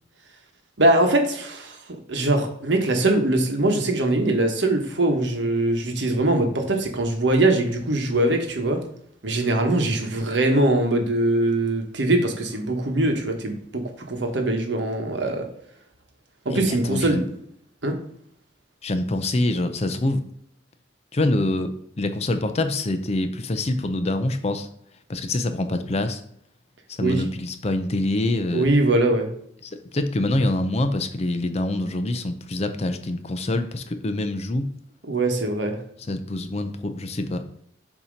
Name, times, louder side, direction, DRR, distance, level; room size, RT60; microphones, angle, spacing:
voice 1, 0.8-8.8 9.2-15.5 16.4-17.2 17.8-17.9 27.0-27.2 28.5-29.3 35.1-35.8, right 2 dB, 70° right, 4 dB, 1.1 m, -22 dB
voice 2, 16.5-17.2 18.8-20.2 21.1-24.7 25.1-26.2 26.9-28.7 29.6-34.7 36.1-37.4, left 1 dB, 35° left, 9 dB, 0.5 m, -25 dB
7.0 x 2.9 x 5.1 m, 0.69 s
head